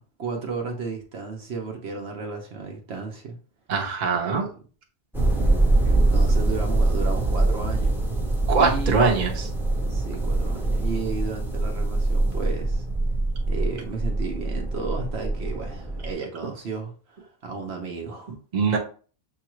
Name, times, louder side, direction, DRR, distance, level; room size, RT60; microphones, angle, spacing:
voice 1, 0.0-3.4 4.2-4.5 5.9-8.0 8.6-9.0 9.9-12.8 13.5-18.3, right 4 dB, 65° right, 1.0 m, -33 dB
voice 2, 3.7-4.4 8.5-9.5 18.5-18.8, right 4 dB, 40° right, 0.9 m, -22 dB
sound 1, 5.1-16.1, right 2 dB, ahead, 0.6 m, -24 dB
6.8 x 2.4 x 3.0 m
omnidirectional pair, 1.2 m